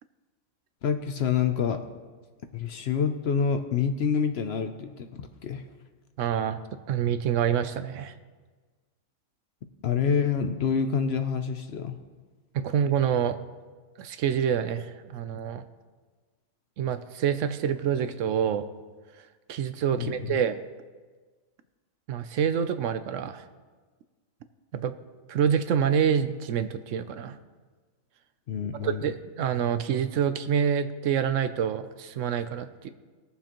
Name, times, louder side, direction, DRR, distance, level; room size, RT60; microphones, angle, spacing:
voice 1, 0.8-1.8 2.5-5.6 9.8-12.0 19.9-20.4 28.5-29.1, left 6 dB, 60° left, 8 dB, 0.8 m, -27 dB
voice 2, 6.2-6.6 6.9-8.1 12.5-13.4 14.0-15.6 16.8-18.6 19.5-20.6 22.1-23.5 24.7-24.9 25.3-27.4 28.8-32.9, right 8 dB, 70° right, 11 dB, 0.9 m, -27 dB
20.5 x 7.1 x 3.0 m, 1.4 s
omnidirectional pair, 1.4 m